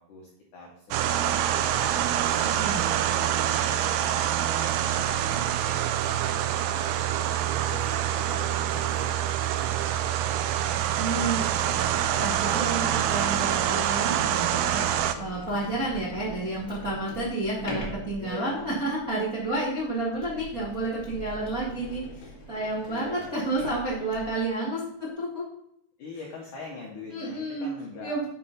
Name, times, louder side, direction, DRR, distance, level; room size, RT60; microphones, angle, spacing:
voice 1, 0.0-2.2 2.8-4.7 5.0-5.7 6.3-7.2 7.7-10.6 18.2-18.8 22.9-23.5 26.0-28.3, left 3 dB, 85° left, -2 dB, 1.8 m, -44 dB
sound 1, 0.9-15.1, right 11 dB, 85° right, 2.9 m, -26 dB
voice 2, 2.4-2.8 11.0-14.9 15.2-25.5 27.1-27.7 28.0-28.3, right 2 dB, 70° right, -8 dB, 0.8 m, -31 dB
Sliding door, 14.6-24.4, equal, 50° left, 1.3 m, -42 dB
7.4 x 4.5 x 5.5 m, 0.74 s
omnidirectional pair, 5.4 m